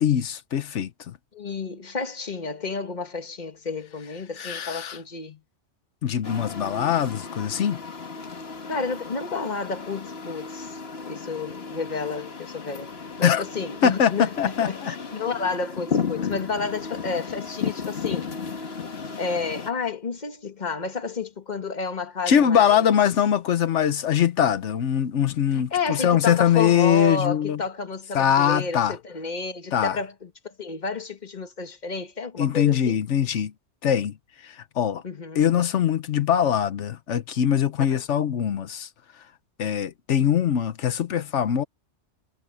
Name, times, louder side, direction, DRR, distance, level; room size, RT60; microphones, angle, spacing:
voice 1, 0.0-1.2 4.4-5.0 6.0-7.8 13.2-13.4 13.8-14.9 22.3-27.6 28.1-29.0 29.7-30.0 32.4-33.5 33.8-35.0 35.3-38.9 39.6-41.6, left 9 dB, 85° left, 1.2 m, -22 dB
voice 2, 1.3-5.4 8.7-12.9 13.2-18.3 19.2-22.9 25.5-33.0 35.0-35.4 37.9-38.0, left 4 dB, 40° left, 1.6 m, -31 dB
sound 1, 6.2-19.7, left 5 dB, 60° left, 1.7 m, -34 dB
omnidirectional pair, 1.2 m